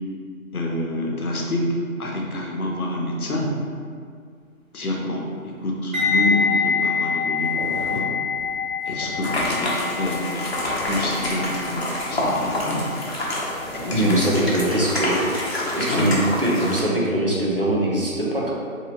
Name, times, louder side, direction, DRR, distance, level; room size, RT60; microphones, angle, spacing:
voice 1, 0.5-3.5 4.7-8.1 8.9-10.3 10.9-12.8 13.9-14.3 15.9-16.1, left 1 dB, 85° left, -1 dB, 0.8 m, -27 dB
sound 1, 5.9-14.9 15.1-15.4, left 5 dB, 70° right, 1.2 m, -27 dB
sound 2, 6.4-6.5 6.7-7.0 7.3-15.2, equal, 15° right, 0.9 m, -39 dB
sound 3, 9.2-16.8, left 1 dB, 50° left, 0.7 m, -27 dB
voice 2, 13.9-15.3 15.7-18.5, right 1 dB, 45° right, -5 dB, 0.4 m, -22 dB
2.8 x 2.7 x 2.9 m, 2.2 s
figure-of-eight pair, 165°, 43 cm